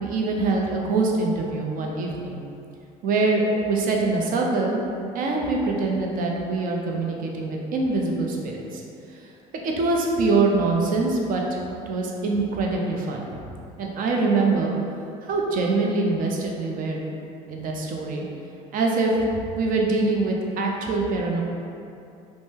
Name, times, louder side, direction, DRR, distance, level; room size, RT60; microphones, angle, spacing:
voice 1, 0.0-2.4 3.0-4.8 5.1-8.8 9.1-9.2 9.5-11.6 11.9-13.3 13.8-14.7 15.2-17.0 17.5-18.2 18.7-19.1 19.6-21.4, right 3 dB, 50° right, 0 dB, 0.5 m, -24 dB
2.6 x 2.1 x 3.5 m, 2.6 s
supercardioid pair, 85°, 18 cm